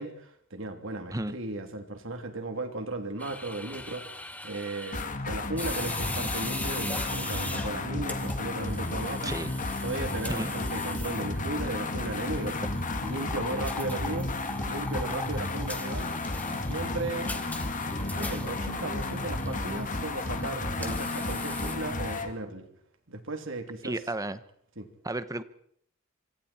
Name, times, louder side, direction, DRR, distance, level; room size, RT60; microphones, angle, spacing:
voice 1, 0.0-4.0 4.4-9.3 9.8-12.7 13.0-14.3 14.6-16.1 16.5-17.3 18.1-22.7 23.1-24.0 24.8-24.9, right 2 dB, 70° right, 6 dB, 3.1 m, -36 dB
sound 1, 3.2-22.2, left 2 dB, 10° left, 2.0 m, -40 dB
sound 2, 4.9-22.3, left 2 dB, 40° left, 1.9 m, -33 dB
voice 2, 9.2-9.6 10.3-10.5 23.8-24.4 25.0-25.4, right 1 dB, 15° right, 13 dB, 1.0 m, -32 dB
26.5 x 25.0 x 4.4 m, 0.66 s
head